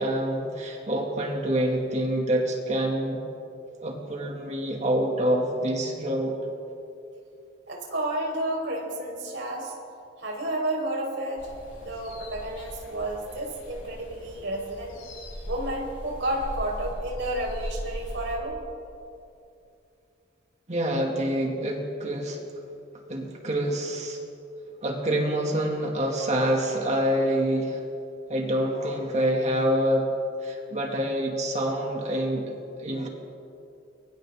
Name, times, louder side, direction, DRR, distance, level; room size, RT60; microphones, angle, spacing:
voice 1, 0.0-3.2 3.8-6.4 20.7-22.4 23.1-24.2 24.8-27.8 28.3-32.5 32.8-33.1, right 1 dB, 35° right, 0 dB, 2.6 m, -26 dB
voice 2, 7.7-9.7 10.2-11.5 11.8-15.0 15.5-18.6, right 1 dB, 65° right, -1 dB, 5.3 m, -31 dB
sound 1, 11.4-18.4, equal, 75° left, 7.0 m, -39 dB
29.5 x 23.5 x 3.9 m, 2.6 s
head